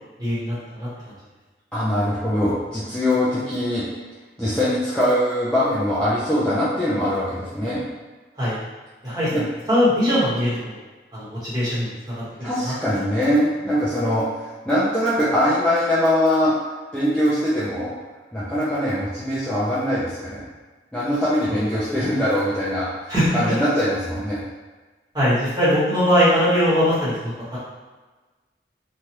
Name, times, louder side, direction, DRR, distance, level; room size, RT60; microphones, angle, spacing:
voice 1, 0.2-0.9 8.4-8.6 9.0-10.8 11.1-12.7 23.1-23.4 25.1-27.6, equal, 25° right, -11 dB, 1.3 m, -21 dB
voice 2, 1.7-3.9 4.4-7.8 9.3-9.4 12.4-16.5 16.9-18.0 18.3-20.5 20.9-22.9 23.3-24.4, equal, 5° left, -11 dB, 0.4 m, -22 dB
3.1 x 2.3 x 2.9 m, 1.3 s
head